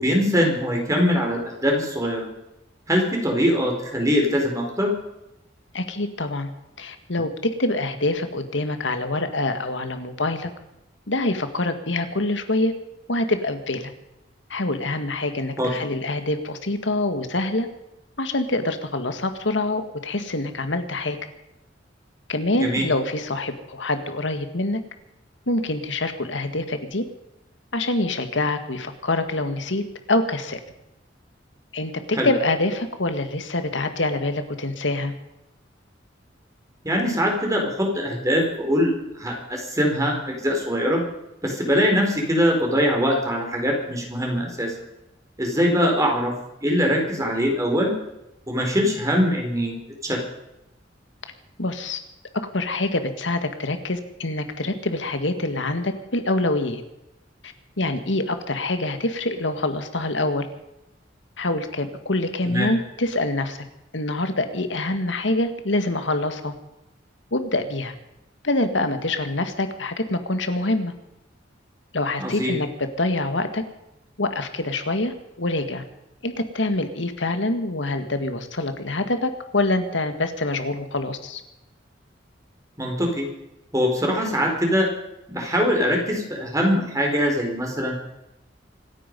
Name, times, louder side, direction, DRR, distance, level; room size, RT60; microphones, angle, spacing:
voice 1, 0.0-2.3 2.9-4.9 15.6-15.7 22.6-22.9 32.2-32.3 36.8-41.0 41.4-44.7 45.4-46.3 46.6-47.9 48.5-49.7 50.0-50.2 62.5-62.7 72.2-72.5 82.8-83.3 83.7-84.9 85.3-88.0, equal, 20° right, 1 dB, 4.3 m, -22 dB
voice 2, 5.7-6.5 6.8-7.3 7.6-10.5 11.1-12.7 13.1-13.9 14.5-17.7 18.2-21.2 22.3-24.8 25.5-27.0 27.7-29.8 30.1-30.6 31.7-35.1 51.6-52.0 52.5-56.8 57.4-60.5 61.4-63.6 63.9-66.5 67.3-67.9 68.4-70.9 71.9-72.7 73.0-73.6 74.2-75.8 76.2-81.4, left 2 dB, 80° left, 8 dB, 2.0 m, -25 dB
26.0 x 10.0 x 5.4 m, 0.89 s
head